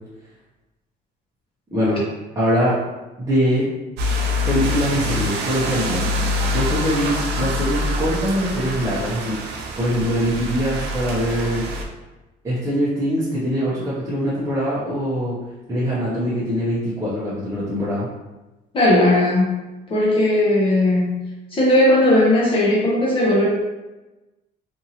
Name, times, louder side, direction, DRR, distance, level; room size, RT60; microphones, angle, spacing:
voice 1, 1.7-2.0 2.4-2.7 3.2-3.6 4.5-6.0 6.5-9.3 9.8-11.6 12.4-15.4 15.7-18.1, equal, 20° right, -9 dB, 0.8 m, -22 dB
sound 1, 4.0-11.8, left 1 dB, 80° right, 0.5 m, -25 dB
voice 2, 18.7-19.5 19.9-21.2 21.5-23.5, left 1 dB, 30° left, -5 dB, 0.8 m, -17 dB
2.7 x 2.6 x 2.9 m, 1.1 s
cardioid pair, 110°, 17 cm